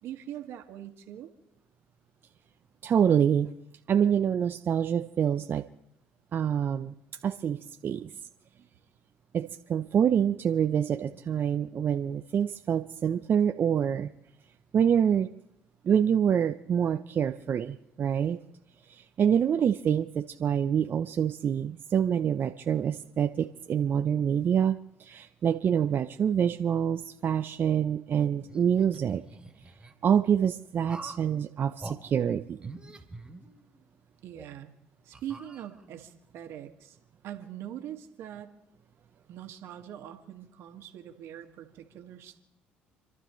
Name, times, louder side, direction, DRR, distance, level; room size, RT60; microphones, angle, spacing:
voice 1, 0.0-1.3 34.2-34.7 35.0-37.0 37.2-38.6 39.3-42.4, right 11 dB, 70° right, 1.8 m, -42 dB
voice 2, 2.8-3.5 3.9-5.6 6.3-6.9 7.2-8.1 9.3-14.1 14.7-15.3 15.8-18.4 18.9-29.2 30.0-32.7, right 8 dB, 50° right, 0.6 m, -26 dB
sound 1, 28.5-29.9 30.8-31.3 31.8-32.0 32.6-33.9 34.3-34.5 35.1-36.0, right 2 dB, 20° right, 2.9 m, -45 dB
29.5 x 12.0 x 3.1 m
supercardioid pair, 65°, 5 cm